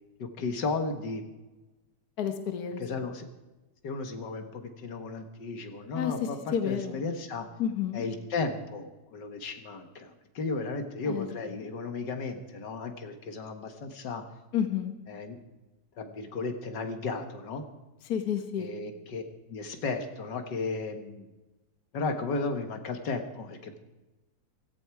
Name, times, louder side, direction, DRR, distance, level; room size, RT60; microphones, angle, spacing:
voice 1, 0.2-1.3 2.8-3.3 3.8-7.5 7.9-14.2 15.1-15.4 16.0-17.6 18.6-19.2 19.5-21.3 21.9-23.8, left 3 dB, 85° left, 6 dB, 2.1 m, -34 dB
voice 2, 2.2-2.8 5.9-7.0 7.6-8.0 11.1-11.3 11.5-11.6 14.5-14.9 18.0-18.7, left 8 dB, 65° left, 7 dB, 1.6 m, -30 dB
16.0 x 15.0 x 4.7 m, 1.1 s
omnidirectional pair, 1.8 m